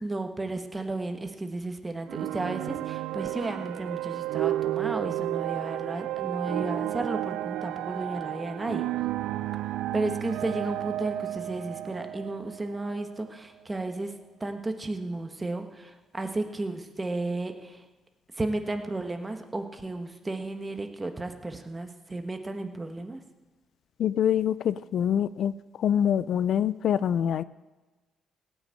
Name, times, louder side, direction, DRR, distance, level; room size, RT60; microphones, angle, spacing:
voice 1, 0.0-8.9 9.9-14.1 14.4-17.8 18.4-23.2, right 2 dB, 20° right, 6 dB, 1.4 m, -33 dB
sound 1, 2.1-13.3, right 14 dB, 90° right, 0.4 m, -32 dB
voice 2, 24.0-25.5 25.8-27.4, left 9 dB, 70° left, 17 dB, 0.4 m, -25 dB
16.5 x 6.3 x 8.5 m, 1.2 s
cardioid pair, 90°, 0 cm